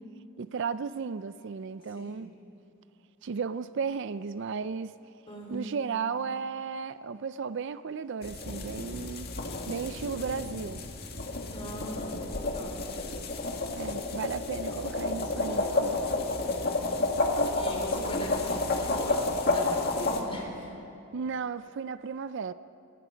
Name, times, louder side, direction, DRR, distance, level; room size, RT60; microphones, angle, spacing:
voice 1, 0.4-2.3 3.2-4.9 5.5-9.3 9.7-10.8 13.7-15.9 21.1-22.5, right 5 dB, 55° right, 0.4 m, -34 dB
voice 2, 1.8-2.3 5.3-5.7 11.5-12.1 12.4-12.9 16.2-16.8 17.5-20.7, equal, 25° left, 4.1 m, -40 dB
sound 1, 8.2-20.2, left 2 dB, 45° left, 1.9 m, -30 dB
27.0 x 19.5 x 5.2 m
head